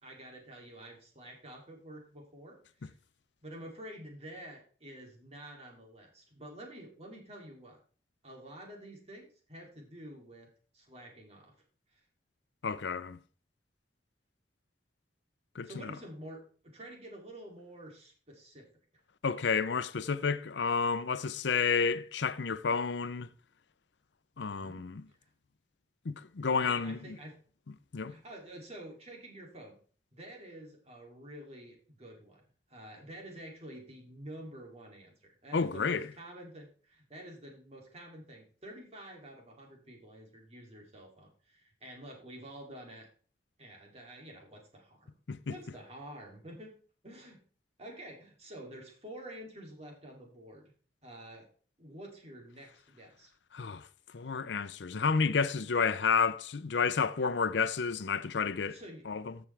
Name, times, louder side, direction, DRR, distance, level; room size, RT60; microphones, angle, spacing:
voice 1, 0.0-2.9 3.4-7.8 8.2-11.6 11.9-12.0 15.6-18.7 24.4-25.2 26.6-27.4 28.1-29.8 30.1-32.4 32.7-43.1 43.6-45.1 45.5-46.8 47.0-47.4 47.8-50.7 51.0-51.5 51.8-53.3 58.6-59.1, right 1 dB, 40° right, 2.9 m, -49 dB
voice 2, 12.6-13.2 15.6-15.9 19.2-23.3 24.4-25.0 26.1-27.2 27.9-28.1 35.5-36.1 45.3-45.5 53.5-53.9 54.1-58.8 59.1-59.3, left 5 dB, 85° left, 0.6 m, -30 dB
14.5 x 6.0 x 3.4 m
head